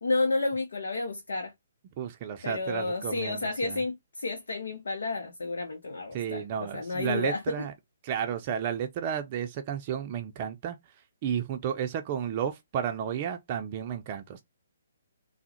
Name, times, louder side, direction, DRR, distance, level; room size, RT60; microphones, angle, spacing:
voice 1, 0.0-1.5 2.4-7.6, left 3 dB, 70° left, 0.6 m, -31 dB
voice 2, 2.0-3.8 6.1-7.7 8.0-10.8 11.2-14.4, right 8 dB, 35° right, 0.4 m, -32 dB
3.4 x 2.1 x 2.8 m
figure-of-eight pair, 135°, 0 cm